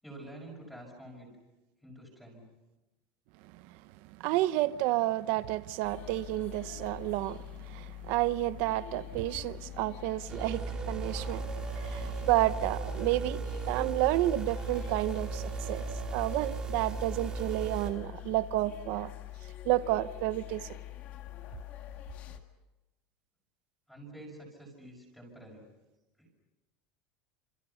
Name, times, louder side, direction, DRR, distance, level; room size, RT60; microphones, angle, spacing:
voice 1, 0.0-1.3 1.8-2.5 23.9-25.7 26.2-26.3, right 1 dB, ahead, 6.1 m, -48 dB
voice 2, 4.2-11.5 11.8-19.1 19.6-20.7, right 16 dB, 50° right, 0.9 m, -30 dB
sound 1, 5.8-22.4, left 14 dB, 35° left, 2.0 m, -45 dB
sound 2, 10.3-17.9, right 4 dB, 20° right, 2.7 m, -36 dB
30.0 x 27.5 x 5.7 m
cardioid pair, 175°, 4 cm